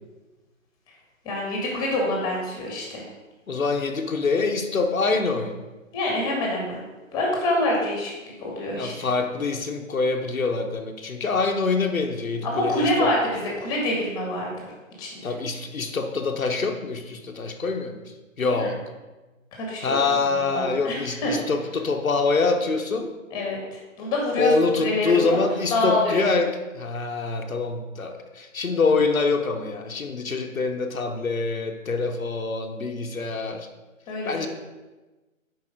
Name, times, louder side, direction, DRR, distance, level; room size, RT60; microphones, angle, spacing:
voice 1, 1.2-3.0 5.9-6.8 7.1-8.9 12.4-14.7 15.0-15.3 18.5-18.7 19.5-20.0 20.5-21.3 23.3-24.5 24.8-25.3 25.7-26.3 34.1-34.5, left 1 dB, 10° left, -1 dB, 1.7 m, -26 dB
voice 2, 3.5-5.6 8.8-13.1 15.2-18.0 18.4-18.8 19.8-23.1 24.4-33.7 34.2-34.5, left 4 dB, 85° left, 3 dB, 1.1 m, -25 dB
7.8 x 5.1 x 5.1 m, 1.2 s
figure-of-eight pair, 150°, 40 cm